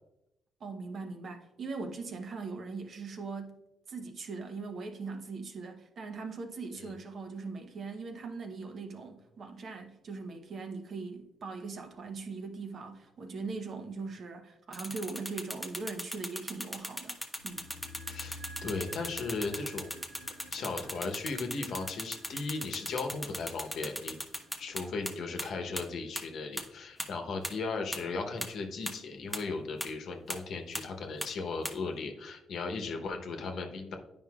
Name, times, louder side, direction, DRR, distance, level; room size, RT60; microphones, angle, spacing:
voice 1, 0.6-3.6 3.9-17.7, right 4 dB, 55° right, 0.9 m, -40 dB
sound 1, 14.7-25.1 25.4-25.5 25.8-25.9 26.2-26.3 26.6-26.7 27.0-27.1 27.4-27.5 27.9-28.0 28.4-28.5 28.9-29.0 29.3-29.4 29.8-29.9 30.3-30.4 30.7-30.8 31.2-31.3 31.6-31.7, equal, ahead, 0.7 m, -36 dB
sound 2, 17.4-27.6 27.9-28.0, equal, 85° right, 1.6 m, -52 dB
voice 2, 18.1-20.0 20.5-24.2 24.6-34.0, left 4 dB, 65° left, 0.9 m, -37 dB
9.4 x 5.2 x 2.4 m
cardioid pair, 90°, 0 cm